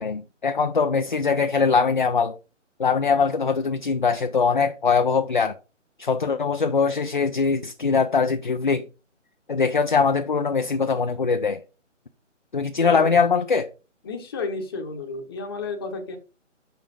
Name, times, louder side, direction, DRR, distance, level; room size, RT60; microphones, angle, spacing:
voice 1, 0.0-2.4 2.8-5.6 6.0-8.8 9.5-11.6 12.5-13.7, left 5 dB, 40° left, 0.4 m, -22 dB
voice 2, 12.8-13.1 14.0-16.2, left 3 dB, 20° left, 1.0 m, -32 dB
6.3 x 5.6 x 4.9 m
hypercardioid pair, 160°, 38 cm